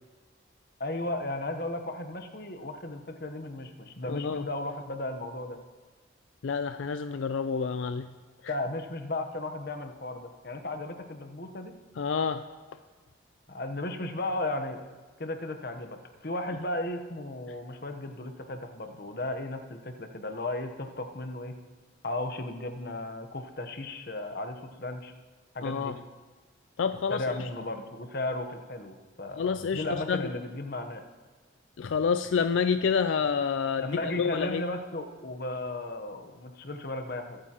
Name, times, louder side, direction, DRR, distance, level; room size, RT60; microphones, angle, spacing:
voice 1, 0.8-5.6 8.5-11.7 13.5-14.8 15.2-16.0 16.2-21.5 22.0-25.1 25.5-25.9 27.1-31.0 33.8-37.4, left 2 dB, 50° left, 6 dB, 1.0 m, -35 dB
voice 2, 4.0-4.4 6.4-8.1 8.4-8.5 12.0-12.5 25.6-25.9 26.8-27.5 29.4-30.3 31.8-34.6, left 6 dB, 80° left, 9 dB, 0.4 m, -28 dB
22.0 x 8.8 x 3.0 m, 1.4 s
head